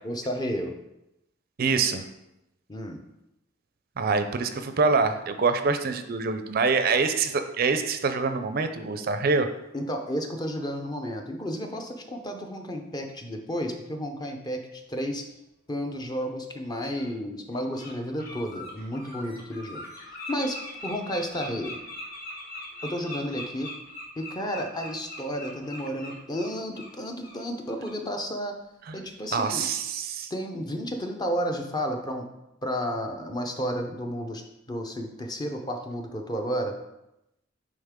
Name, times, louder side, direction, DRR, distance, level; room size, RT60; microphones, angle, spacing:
voice 1, 0.0-0.7 2.7-3.0 9.7-15.3 15.7-19.8 20.1-20.6 20.8-21.8 22.8-23.7 24.2-28.5 28.9-29.7 30.3-32.2 32.6-34.4 34.7-36.7, equal, 20° left, 4 dB, 0.6 m, -32 dB
voice 2, 1.6-2.0 4.0-9.5 28.9-29.0 29.3-30.3, right 4 dB, 45° right, 8 dB, 0.4 m, -25 dB
Bird, 16.9-17.1 17.5-17.9 18.2-26.9 27.2-27.4 27.8-28.0, left 2 dB, 50° left, 1.6 m, -41 dB
9.0 x 3.6 x 3.6 m, 0.90 s
head